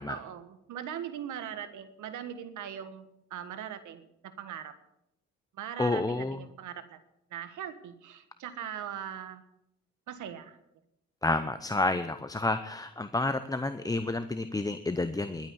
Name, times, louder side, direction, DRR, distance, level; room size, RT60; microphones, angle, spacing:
voice 1, 0.1-4.0 4.4-4.7 5.6-7.0 7.3-9.4 10.1-10.6, right 9 dB, 75° right, 11 dB, 1.6 m, -40 dB
voice 2, 5.8-6.4 11.2-15.5, left 2 dB, 10° left, 11 dB, 0.7 m, -30 dB
12.0 x 9.0 x 9.5 m, 0.81 s
cardioid pair, 90°, 30 cm